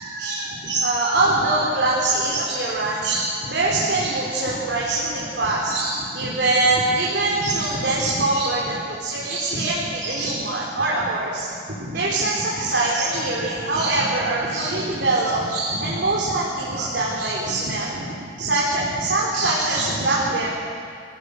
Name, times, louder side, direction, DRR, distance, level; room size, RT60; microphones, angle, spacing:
voice 1, 0.0-11.5 11.8-18.0 18.4-20.5, right 2 dB, 70° right, -5 dB, 3.9 m, -23 dB
27.0 x 17.0 x 6.9 m, 2.3 s
head